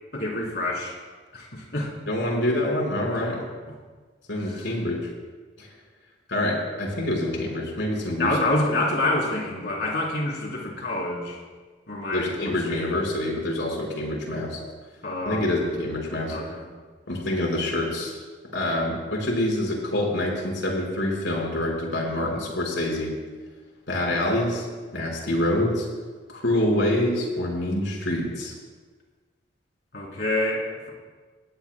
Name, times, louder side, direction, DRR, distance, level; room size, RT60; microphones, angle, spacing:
voice 1, 0.1-0.9 1.3-1.9 3.1-3.4 4.4-4.7 8.2-11.4 11.9-12.9 15.0-15.7 16.3-16.7 29.9-30.9, left 2 dB, 60° left, -3 dB, 3.7 m, -27 dB
voice 2, 2.1-3.4 4.3-5.0 5.6-5.7 6.3-8.3 12.1-14.6 15.2-16.4 17.1-18.2 18.5-23.1 23.9-24.6 24.9-25.9 26.3-28.5, left 1 dB, 80° left, -2 dB, 4.9 m, -26 dB
20.5 x 16.0 x 2.3 m, 1.4 s
head